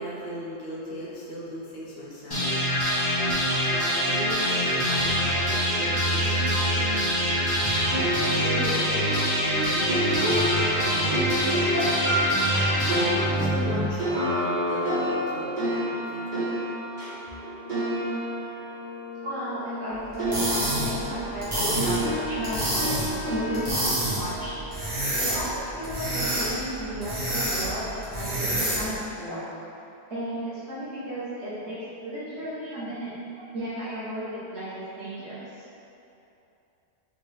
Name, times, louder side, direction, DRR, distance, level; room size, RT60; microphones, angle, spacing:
voice 1, 0.0-2.8 3.7-7.5 7.7-7.9 8.4-9.4 9.6-12.4 13.3-16.5, equal, 70° left, -6 dB, 1.0 m, -37 dB
sound 1, 2.3-14.3, equal, 20° left, 1.0 m, -25 dB
sound 2, 7.9-19.9 20.2-25.4, equal, 45° right, 1.0 m, -30 dB
voice 2, 19.2-24.5 25.2-29.5 30.1-33.1 33.5-35.6, equal, 75° right, -11 dB, 1.3 m, -34 dB
sound 3, 20.1-29.0, right 1 dB, 20° right, 1.1 m, -29 dB
3.8 x 2.7 x 3.2 m, 2.8 s
omnidirectional pair, 1.2 m